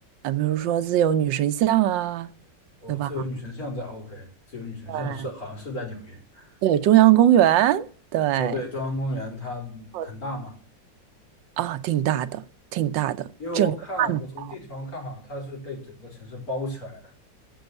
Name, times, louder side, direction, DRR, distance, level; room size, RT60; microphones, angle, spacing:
voice 1, 0.2-2.3 2.9-3.1 4.9-5.3 6.6-7.9 8.1-8.6 9.9-10.1 11.6-12.4 12.7-13.3 13.6-14.2, right 12 dB, 90° right, 1.5 m, -21 dB
voice 2, 2.8-6.6 8.4-10.6 13.4-17.1, left 1 dB, 50° left, 4.8 m, -34 dB
14.5 x 5.5 x 8.1 m
omnidirectional pair, 2.0 m